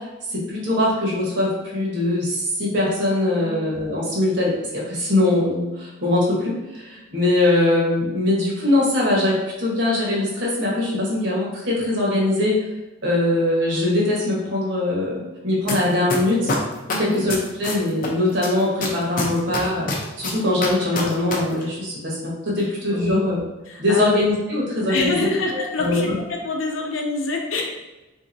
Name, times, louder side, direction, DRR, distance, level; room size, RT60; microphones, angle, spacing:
voice 1, 0.0-12.6 13.0-16.5 17.0-19.9 20.2-23.4 23.8-26.2, left 1 dB, 65° right, -4 dB, 1.1 m, -22 dB
sound 1, 15.7-15.8 16.1-18.1 18.4-21.4 21.6-21.7, left 3 dB, 45° left, 0.5 m, -25 dB
voice 2, 16.9-17.2 22.9-23.2 23.7-24.2 24.9-26.1 26.4-27.6, left 2 dB, 85° left, 1 dB, 0.6 m, -25 dB
3.7 x 2.8 x 2.6 m, 1.1 s
head